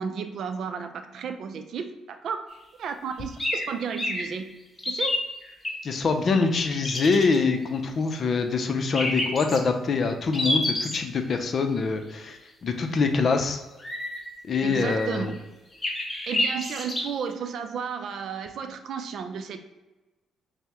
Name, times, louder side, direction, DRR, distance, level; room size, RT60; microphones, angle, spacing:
voice 1, 0.0-2.4 2.8-4.5 4.8-5.2 14.6-15.4 16.3-19.6, right 6 dB, 65° right, 7 dB, 0.4 m, -33 dB
sound 1, 3.4-3.6 4.0-4.2 4.8-5.7 6.7-7.4 8.9-9.6 10.3-11.0 13.8-14.2 14.7-15.3 15.8-17.0, left 1 dB, 20° left, 0.9 m, -28 dB
voice 2, 5.8-13.6 14.5-15.3, left 4 dB, 50° left, 6 dB, 0.5 m, -24 dB
5.5 x 2.1 x 2.9 m, 1.1 s
cardioid pair, 90°, 0 cm